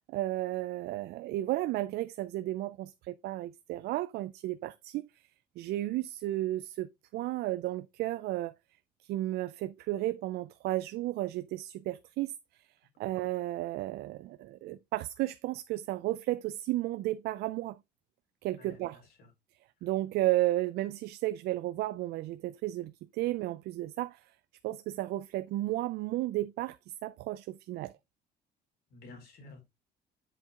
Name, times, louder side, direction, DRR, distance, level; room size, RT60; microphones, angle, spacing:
voice 1, 0.1-5.0 5.6-8.5 9.1-12.6 13.0-17.8 18.4-19.0 19.8-24.2 24.6-26.8 27.0-27.9, right 16 dB, 75° right, 0.4 m, -33 dB
voice 2, 18.6-19.3 19.8-19.9 28.9-29.6, left 3 dB, 65° left, 4.2 m, -52 dB
7.8 x 4.6 x 3.6 m
cardioid pair, 110°, 17 cm